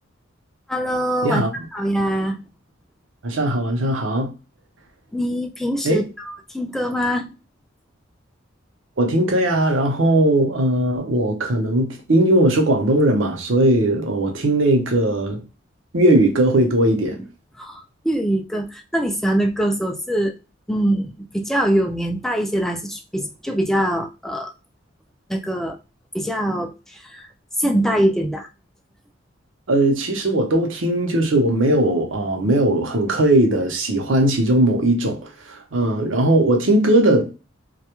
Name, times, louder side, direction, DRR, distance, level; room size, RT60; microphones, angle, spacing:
voice 1, 0.7-1.4 1.7-2.4 5.1-7.3 17.6-20.3 20.7-24.5 25.3-25.8 26.1-26.7 27.1-27.2 27.6-28.5, right 1 dB, ahead, 0.3 m, -23 dB
voice 2, 3.2-4.3 5.8-6.1 9.0-15.4 15.9-17.2 29.7-37.3, right 1 dB, 70° right, 0.7 m, -19 dB
2.3 x 2.1 x 2.9 m
head